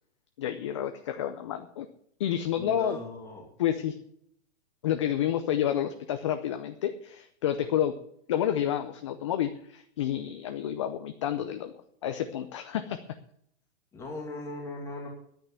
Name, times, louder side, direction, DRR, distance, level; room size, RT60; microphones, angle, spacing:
voice 1, 0.4-1.9 2.2-3.0 3.6-4.0 4.8-7.9 8.3-11.7 12.0-13.0, left 10 dB, 30° left, 8 dB, 0.5 m, -29 dB
voice 2, 2.6-3.5 13.9-15.1, left 2 dB, 10° left, 0 dB, 2.3 m, -38 dB
10.5 x 9.1 x 7.7 m, 0.69 s
hypercardioid pair, 170°, 33 cm